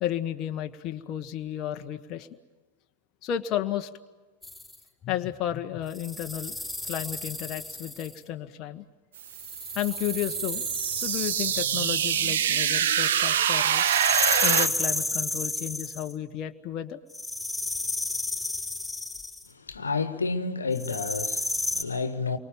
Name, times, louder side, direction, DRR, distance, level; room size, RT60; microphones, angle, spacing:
voice 1, 0.0-2.3 3.2-3.9 5.0-6.6 6.9-8.8 9.7-10.6 10.9-13.8 14.4-17.0, left 11 dB, 35° left, 1.3 m, -32 dB
sound 1, 4.4-4.7 5.9-8.2 9.3-12.5 13.7-16.1 17.1-19.5 20.7-21.8, left 2 dB, ahead, 4.7 m, -32 dB
sound 2, 9.2-14.7, right 9 dB, 60° right, 1.1 m, -25 dB
voice 2, 19.5-22.4, left 4 dB, 75° left, 1.5 m, -30 dB
29.5 x 24.5 x 7.1 m
figure-of-eight pair, 90°, 0 cm